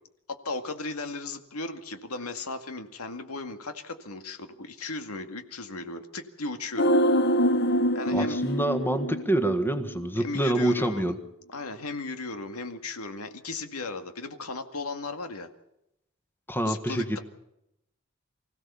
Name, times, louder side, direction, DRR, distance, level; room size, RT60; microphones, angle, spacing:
voice 1, 0.3-6.9 7.9-8.4 10.2-11.1 11.5-15.5 16.7-17.2, left 3 dB, 85° left, 7 dB, 2.1 m, -36 dB
sound 1, 6.8-10.1 10.3-10.4, equal, 50° left, 0.9 m, -25 dB
voice 2, 8.1-11.1 16.5-17.2, right 1 dB, 10° left, 8 dB, 1.6 m, -26 dB
25.0 x 16.5 x 7.0 m, 0.84 s
head